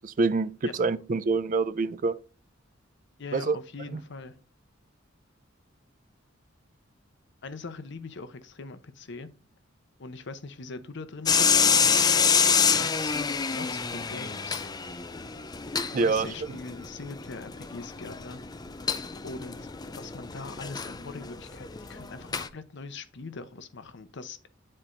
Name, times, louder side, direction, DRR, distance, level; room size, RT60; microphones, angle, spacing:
voice 1, 0.0-2.1 3.3-3.6 15.9-16.3, right 3 dB, 45° right, 0.4 m, -26 dB
voice 2, 3.2-4.3 7.4-9.3 10.0-13.2 13.5-14.6 15.9-18.4 19.2-24.5, left 3 dB, 65° left, 0.8 m, -41 dB
sound 1, 11.3-22.5, left 6 dB, 20° left, 0.4 m, -27 dB
9.7 x 4.3 x 2.6 m
head